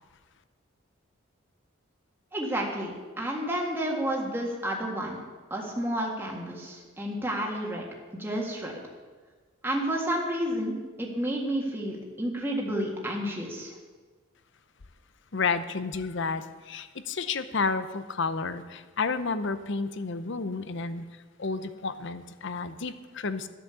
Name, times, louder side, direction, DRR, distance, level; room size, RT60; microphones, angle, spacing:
voice 1, 2.3-5.2 5.5-7.9 8.2-8.7 9.6-13.7, right 1 dB, 10° right, -2 dB, 1.7 m, -30 dB
voice 2, 15.3-21.0 21.4-23.5, left 4 dB, 60° left, 12 dB, 0.7 m, -31 dB
13.0 x 8.5 x 7.0 m, 1.4 s
head